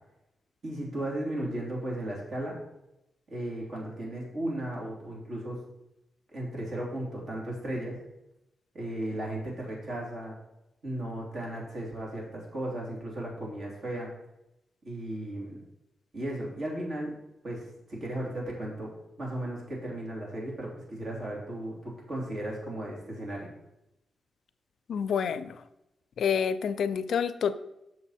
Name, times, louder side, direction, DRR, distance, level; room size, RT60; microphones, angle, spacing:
voice 1, 0.6-2.5 3.3-5.6 6.3-8.0 8.7-10.3 10.8-14.1 14.8-15.6 16.1-17.1 17.4-18.9 19.2-23.5, right 1 dB, 55° right, -3 dB, 3.2 m, -35 dB
voice 2, 24.9-25.6 26.2-27.5, left 7 dB, 75° left, 13 dB, 0.4 m, -28 dB
7.1 x 6.2 x 4.3 m, 0.88 s
cardioid pair, 105°, 0 cm